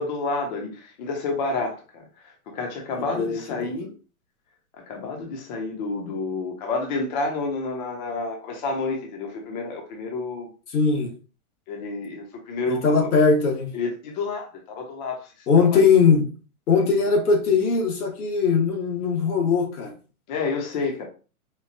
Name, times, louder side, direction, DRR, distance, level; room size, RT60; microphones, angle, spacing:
voice 1, 0.0-3.9 4.8-10.5 11.7-13.1 13.7-15.8 20.3-21.0, left 3 dB, 30° left, 0.7 m, -30 dB
voice 2, 3.2-3.7 10.7-11.1 12.7-13.7 15.5-16.3 16.7-19.9, left 5 dB, 85° left, 1.3 m, -20 dB
4.4 x 2.2 x 2.6 m
hypercardioid pair, 150°, 44 cm